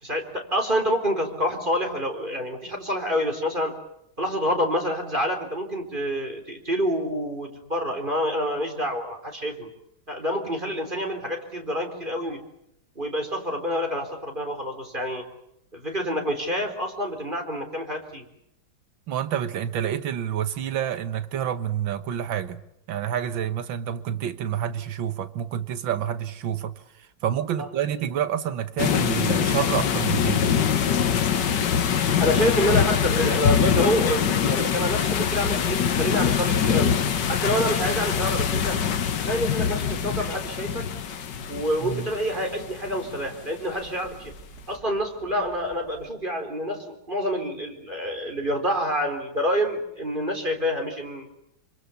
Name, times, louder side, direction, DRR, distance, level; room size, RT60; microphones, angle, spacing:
voice 1, 0.0-3.7 4.2-9.7 10.1-12.4 13.0-15.2 15.7-18.3 27.6-27.7 32.2-37.0 37.3-38.8 39.2-40.9 41.5-44.3 44.7-51.3, equal, 25° right, 4.0 m, -27 dB
voice 2, 19.1-22.6 22.9-26.8 27.2-30.5 41.8-42.1, right 9 dB, 80° right, 2.0 m, -28 dB
sound 1, 28.8-43.4, left 7 dB, 65° left, 1.8 m, -24 dB
sound 2, 33.0-46.1, right 2 dB, 50° right, 4.3 m, -46 dB
26.5 x 25.0 x 7.0 m
omnidirectional pair, 2.1 m